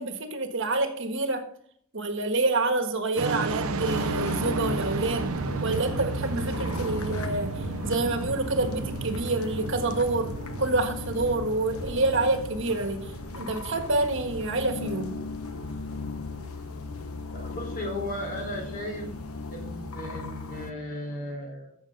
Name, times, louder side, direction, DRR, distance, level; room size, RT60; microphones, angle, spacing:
voice 1, 0.0-1.4 1.9-5.3 5.6-13.1 13.3-15.2, right 2 dB, 60° right, 6 dB, 1.5 m, -27 dB
sound 1, 3.2-19.9, right 4 dB, 80° right, 0.7 m, -35 dB
sound 2, 3.5-20.7, left 3 dB, 80° left, 1.0 m, -37 dB
voice 2, 17.3-19.1 19.5-21.8, left 1 dB, 40° left, 1 dB, 4.0 m, -35 dB
14.5 x 6.7 x 5.3 m, 0.65 s
head